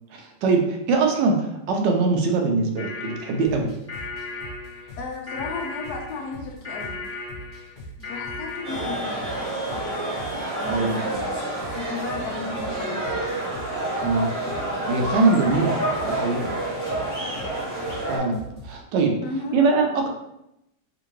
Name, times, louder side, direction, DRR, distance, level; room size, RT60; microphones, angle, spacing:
voice 1, 0.1-3.7 10.7-11.0 14.0-14.3 14.9-15.8 16.0-16.4 18.1-19.2 19.5-20.1, right 3 dB, 85° right, 2 dB, 1.3 m, -22 dB
sound 1, 2.8-9.2, left 4 dB, 10° left, 0.8 m, -36 dB
sound 2, 3.4-18.8, right 1 dB, 30° left, 1.5 m, -42 dB
voice 2, 5.0-7.0 8.0-9.2 10.6-11.2 11.7-13.1 19.2-19.6, left 3 dB, 75° left, 1 dB, 1.1 m, -34 dB
sound 3, 8.6-18.2, right 1 dB, 10° right, 0.9 m, -28 dB
3.6 x 2.5 x 3.0 m, 0.83 s
omnidirectional pair, 1.8 m